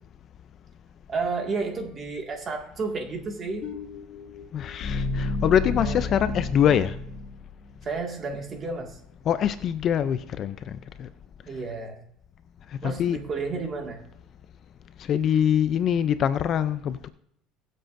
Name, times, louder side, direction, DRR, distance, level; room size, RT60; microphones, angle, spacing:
voice 1, 1.1-3.7 5.8-6.1 7.8-9.0 11.5-12.0 12.8-14.0, right 4 dB, 25° right, 1.8 m, -31 dB
sound 1, 3.6-7.7, left 3 dB, 50° left, 2.3 m, -31 dB
voice 2, 4.5-7.0 9.3-11.1 12.7-13.2 15.0-17.1, left 9 dB, 35° left, 0.4 m, -24 dB
22.5 x 7.8 x 2.5 m
cardioid pair, 165°, 0 cm